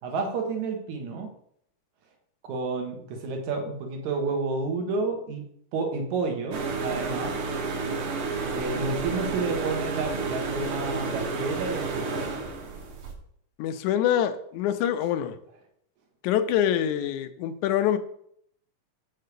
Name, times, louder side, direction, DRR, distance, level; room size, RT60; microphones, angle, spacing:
voice 1, 0.0-1.3 2.4-5.4 5.7-7.4 8.5-12.2, right 3 dB, 80° right, 3 dB, 2.7 m, -30 dB
sound 1, 6.5-13.1, right 4 dB, 55° right, 1.7 m, -31 dB
voice 2, 13.6-15.4 16.2-18.0, left 10 dB, 85° left, 9 dB, 2.1 m, -25 dB
6.6 x 4.8 x 6.7 m, 0.69 s
omnidirectional pair, 3.4 m